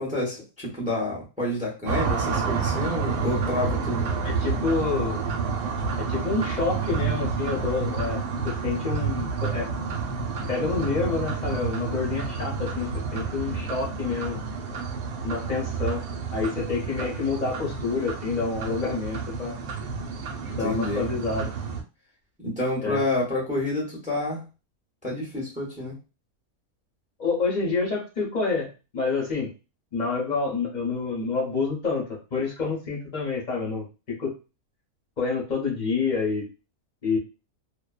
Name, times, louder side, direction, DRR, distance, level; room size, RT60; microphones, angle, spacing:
voice 1, 0.0-4.1 20.6-21.1 22.4-24.4 25.0-26.0, left 1 dB, 10° right, -3 dB, 0.6 m, -28 dB
sound 1, 1.9-21.8, right 5 dB, 80° right, 1.1 m, -29 dB
voice 2, 4.2-5.2 5.9-9.7 10.5-14.4 15.2-16.0 16.3-19.6 20.5-21.5 22.8-23.0 27.2-29.5 29.9-34.3 35.2-36.5 37.0-37.2, left 4 dB, 40° left, -3 dB, 0.6 m, -28 dB
2.6 x 2.2 x 2.3 m, 0.30 s
omnidirectional pair, 1.6 m